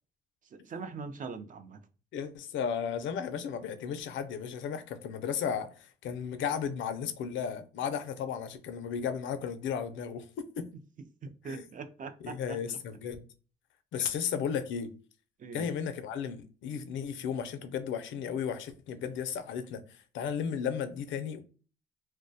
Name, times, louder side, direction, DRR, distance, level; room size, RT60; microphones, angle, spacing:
voice 1, 0.6-1.8 11.2-12.6 14.0-14.1 15.4-15.7, right 4 dB, 40° right, 0.4 m, -41 dB
voice 2, 2.1-10.3 10.6-10.7 11.4-11.7 12.2-13.2 13.9-14.9 15.5-21.4, left 7 dB, 70° left, 0.4 m, -34 dB
2.3 x 2.1 x 2.6 m
cardioid pair, 90°, 20 cm